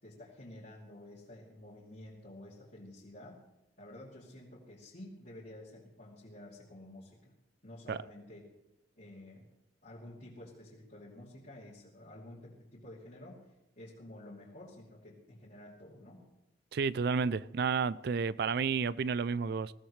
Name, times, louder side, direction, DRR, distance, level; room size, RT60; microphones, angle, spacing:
voice 1, 0.0-3.4 3.8-7.3 7.6-8.4 9.0-9.5 9.8-13.4 13.8-16.2, left 1 dB, 55° left, 2.8 m, -51 dB
voice 2, 16.7-19.7, right 5 dB, 60° right, 0.4 m, -31 dB
21.5 x 15.0 x 3.2 m
head